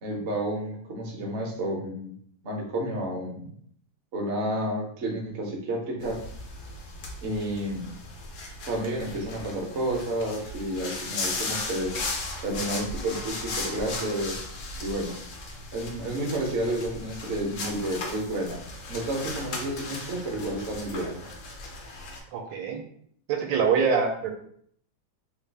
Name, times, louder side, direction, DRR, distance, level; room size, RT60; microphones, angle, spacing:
voice 1, 0.0-2.1 2.4-3.5 4.1-6.2 7.2-7.9 8.7-11.9 12.4-14.4 14.8-15.2 15.7-18.6 18.9-21.2, right 1 dB, 55° right, -1 dB, 0.8 m, -30 dB
sound 1, 6.0-22.2, left 2 dB, 90° left, 0.6 m, -36 dB
voice 2, 22.3-22.8 23.3-24.3, right 6 dB, 80° right, 3 dB, 1.3 m, -24 dB
3.2 x 2.4 x 3.3 m, 0.64 s
omnidirectional pair, 2.1 m